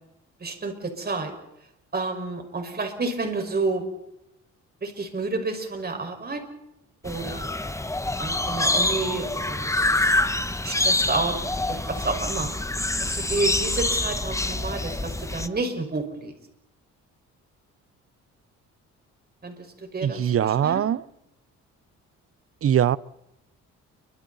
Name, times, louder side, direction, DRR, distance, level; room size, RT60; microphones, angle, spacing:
voice 1, 0.4-1.3 1.9-3.9 4.8-6.4 7.0-7.5 8.2-10.1 10.6-11.4 11.7-12.5 13.0-16.3 19.4-19.5 19.9-20.8, right 3 dB, 30° right, 5.4 m, -30 dB
sound 1, 7.1-15.5, left 2 dB, 10° left, 1.2 m, -26 dB
voice 2, 20.0-21.0 22.6-23.0, right 10 dB, 50° right, 0.8 m, -22 dB
30.0 x 24.5 x 4.2 m
cardioid pair, 90°, 30 cm